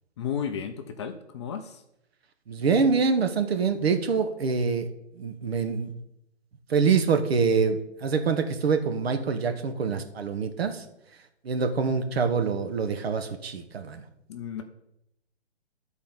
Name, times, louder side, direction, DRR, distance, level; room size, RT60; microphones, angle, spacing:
voice 1, 0.2-1.8 14.3-14.6, left 8 dB, 25° left, 7 dB, 0.5 m, -33 dB
voice 2, 2.5-4.9 5.1-5.9 6.7-10.8 11.4-14.0, right 5 dB, 60° right, 7 dB, 1.3 m, -25 dB
11.5 x 4.4 x 5.5 m, 0.83 s
figure-of-eight pair, 135°, 34 cm